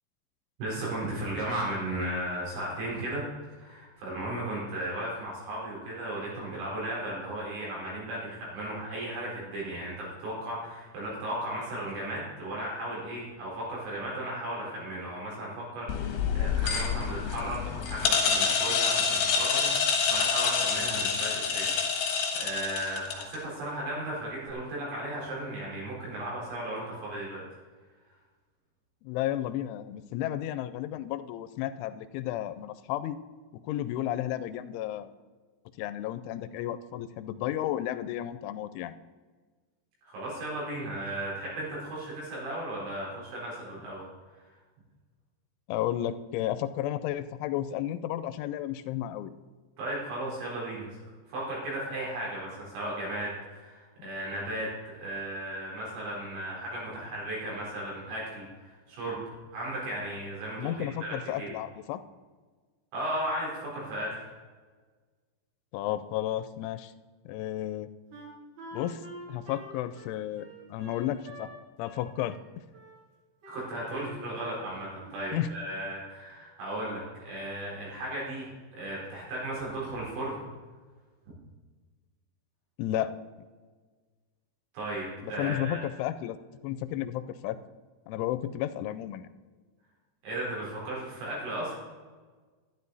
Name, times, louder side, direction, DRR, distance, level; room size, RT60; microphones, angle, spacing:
voice 1, 0.6-22.0 22.4-27.4 40.0-44.0 49.8-50.9 51.3-54.7 55.0-59.2 59.5-61.5 62.9-64.3 73.5-78.5 78.7-80.4 84.7-85.8 90.2-91.8, right 1 dB, 75° right, -5 dB, 6.7 m, -35 dB
sound 1, 15.9-23.4, left 6 dB, 65° left, 3.3 m, -27 dB
voice 2, 29.0-33.2 33.6-35.1 35.8-38.9 45.7-49.3 54.0-54.1 60.6-62.0 65.7-66.9 67.3-67.9 68.7-69.0 69.3-71.5 71.8-72.4 75.3-75.5 82.8-83.1 85.2-86.4 86.6-87.6 88.1-89.3, left 12 dB, 90° left, 13 dB, 3.0 m, -32 dB
Wind instrument woodwind instrument, 68.1-71.6 71.8-73.0 73.4-74.7 75.0-75.5, right 1 dB, 55° right, 4.3 m, -46 dB
12.0 x 11.5 x 4.1 m, 1.4 s
omnidirectional pair, 5.4 m